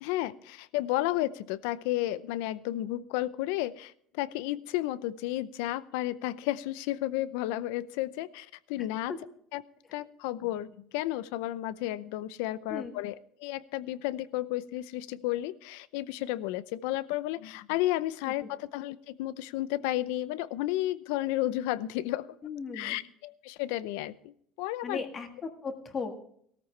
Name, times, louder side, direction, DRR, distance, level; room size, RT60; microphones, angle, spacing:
voice 1, 0.0-9.1 9.5-9.6 9.9-22.3 22.7-25.0, left 15 dB, 85° left, 17 dB, 0.6 m, -32 dB
voice 2, 22.4-23.0 24.8-26.1, left 5 dB, 25° left, 6 dB, 1.7 m, -37 dB
17.5 x 13.5 x 3.3 m, 0.66 s
cardioid pair, 165°, 0 cm